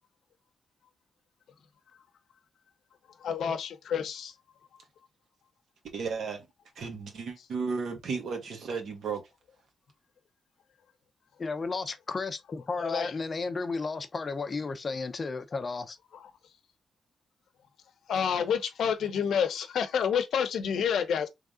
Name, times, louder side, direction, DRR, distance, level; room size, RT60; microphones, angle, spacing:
voice 1, 3.2-4.3 12.8-13.1 18.1-21.3, left 7 dB, 70° left, 0.8 m, -28 dB
voice 2, 5.9-6.5 6.7-9.2, right 5 dB, 65° right, 1.5 m, -34 dB
voice 3, 11.4-16.0, left 4 dB, 30° left, 0.5 m, -33 dB
3.6 x 3.4 x 3.6 m
wide cardioid pair, 170°, 0 cm